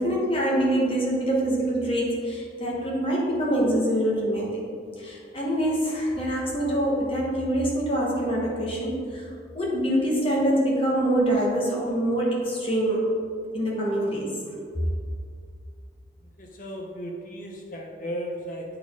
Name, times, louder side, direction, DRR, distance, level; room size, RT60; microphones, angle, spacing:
voice 1, 0.0-4.6 5.0-9.3 9.5-13.1 13.5-14.3, right 1 dB, 30° left, -4 dB, 1.3 m, -25 dB
voice 2, 16.4-18.8, equal, 50° left, 1 dB, 0.7 m, -35 dB
8.6 x 4.2 x 3.6 m, 2.2 s
head